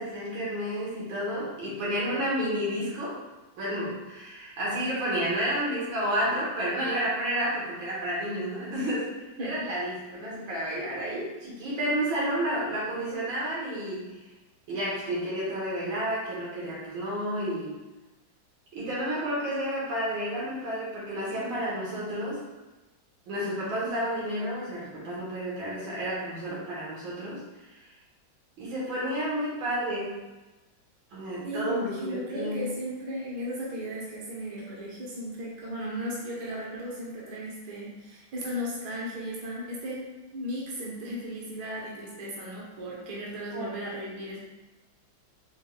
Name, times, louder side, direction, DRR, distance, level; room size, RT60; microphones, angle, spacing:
voice 1, 0.0-3.2 3.6-9.1 9.4-14.2 14.7-17.8 18.7-22.4 23.3-27.4 27.7-27.8 28.6-30.2 31.1-32.7 43.5-43.7, equal, 80° right, -7 dB, 2.1 m, -31 dB
voice 2, 31.4-44.4, equal, 60° right, -5 dB, 1.4 m, -36 dB
4.5 x 4.0 x 2.3 m, 1.1 s
omnidirectional pair, 2.2 m